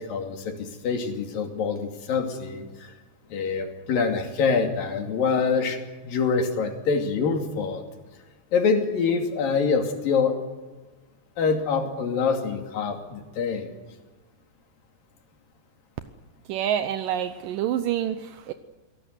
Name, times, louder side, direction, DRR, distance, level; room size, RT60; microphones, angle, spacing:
voice 1, 0.0-2.9 3.3-7.8 8.5-10.4 11.4-13.7, left 5 dB, 55° left, 4 dB, 4.1 m, -25 dB
voice 2, 16.5-18.5, right 10 dB, 75° right, 9 dB, 2.0 m, -27 dB
26.5 x 18.0 x 8.2 m, 1.2 s
omnidirectional pair, 5.0 m